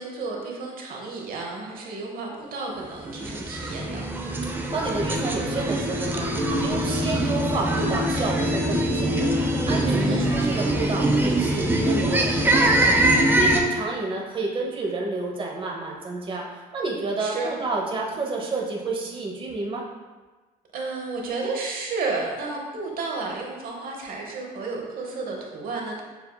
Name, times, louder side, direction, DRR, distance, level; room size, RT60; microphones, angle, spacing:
voice 1, 0.0-4.1 9.8-10.3 17.2-17.5 20.7-26.0, right 3 dB, 60° right, 0 dB, 0.9 m, -32 dB
sound 1, 3.0-13.6, right 1 dB, 10° right, 0.4 m, -23 dB
voice 2, 4.5-9.3 9.7-19.9, right 3 dB, 30° right, -1 dB, 0.8 m, -30 dB
6.9 x 2.6 x 2.2 m, 1.3 s
cardioid pair, 110°, 17 cm